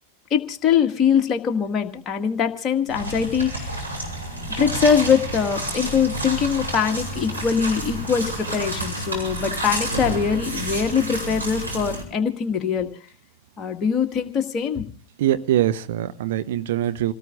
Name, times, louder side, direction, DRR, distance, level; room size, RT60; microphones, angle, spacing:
voice 1, 0.3-3.8 4.6-12.9 13.6-14.9, left 7 dB, 25° left, 1.8 m, -22 dB
sound 1, 2.9-12.0, right 1 dB, 90° right, 5.6 m, -30 dB
voice 2, 15.2-17.1, right 12 dB, 55° right, 0.7 m, -23 dB
28.0 x 18.0 x 2.5 m
figure-of-eight pair, 90°, 0 cm